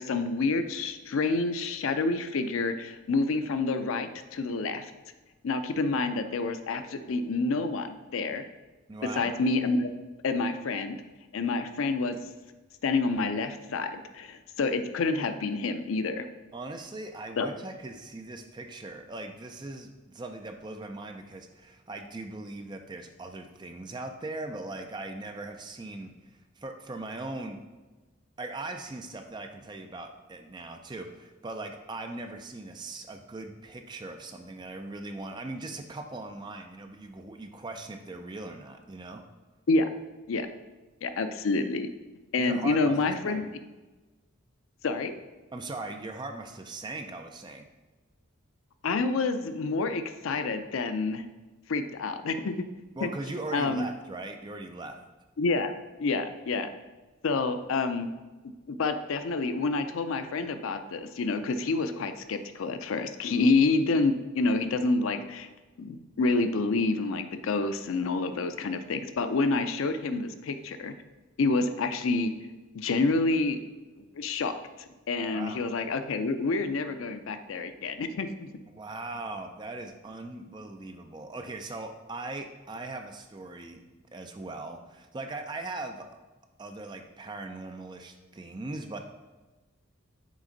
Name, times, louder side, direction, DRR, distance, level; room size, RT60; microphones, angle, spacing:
voice 1, 0.0-4.9 5.4-8.4 9.2-9.9 10.2-11.0 11.3-12.2 12.8-16.3 17.4-17.5 39.7-39.9 40.3-40.5 41.0-41.9 42.3-43.5 44.8-45.1 48.8-51.2 51.7-52.6 53.0-53.1 53.5-53.9 55.4-55.7 56.0-56.7 57.2-58.1 58.7-65.5 65.8-70.9 71.4-72.3 72.7-73.6 74.1-78.5, left 3 dB, 80° left, 9 dB, 0.5 m, -28 dB
voice 2, 8.9-9.3 16.5-27.6 28.4-39.2 42.4-42.9 43.3-43.4 45.5-47.7 53.0-55.0 75.3-75.6 78.7-83.8 84.1-86.1 86.6-89.0, right 2 dB, 20° right, 5 dB, 0.4 m, -39 dB
6.2 x 4.2 x 3.9 m, 1.2 s
head